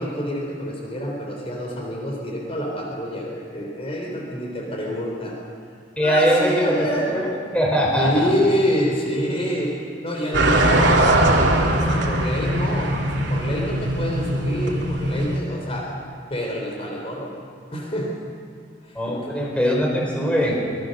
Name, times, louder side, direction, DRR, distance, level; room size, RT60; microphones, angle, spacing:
voice 1, 0.0-5.3 6.0-7.1 7.9-9.7 10.0-15.9 16.3-17.3 17.7-18.1 18.8-19.4, equal, 35° left, -1 dB, 3.6 m, -27 dB
voice 2, 6.0-8.3 18.9-20.5, equal, 5° left, -2 dB, 4.4 m, -21 dB
sound 1, 10.3-15.4, right 1 dB, 70° right, 2.8 m, -20 dB
24.5 x 20.5 x 6.5 m, 2.3 s
head